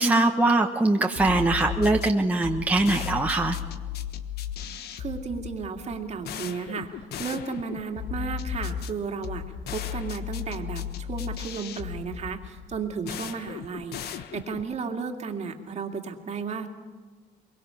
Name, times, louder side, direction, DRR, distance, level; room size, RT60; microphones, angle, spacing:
voice 1, 0.0-3.6, right 2 dB, 10° right, 1 dB, 1.3 m, -22 dB
sound 1, 1.2-14.8, left 9 dB, 70° left, 1.2 m, -35 dB
voice 2, 5.0-6.9 7.2-16.7, right 5 dB, 40° right, 4 dB, 2.3 m, -34 dB
23.0 x 23.0 x 5.8 m, 1.5 s
cardioid pair, 110°, 17 cm